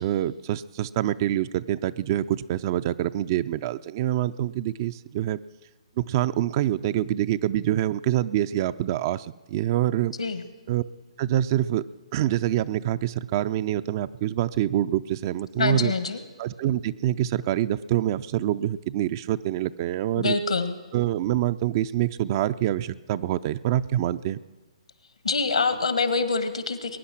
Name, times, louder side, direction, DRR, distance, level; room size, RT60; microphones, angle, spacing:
voice 1, 0.0-5.4 6.0-10.1 10.7-10.8 11.2-11.8 12.1-15.9 16.4-20.4 20.9-24.4, right 13 dB, 35° right, 13 dB, 0.4 m, -26 dB
voice 2, 15.6-16.2 20.2-20.8 25.2-27.0, left 4 dB, 70° left, 11 dB, 1.5 m, -25 dB
21.5 x 9.8 x 6.1 m, 1.3 s
figure-of-eight pair, 130°, 3 cm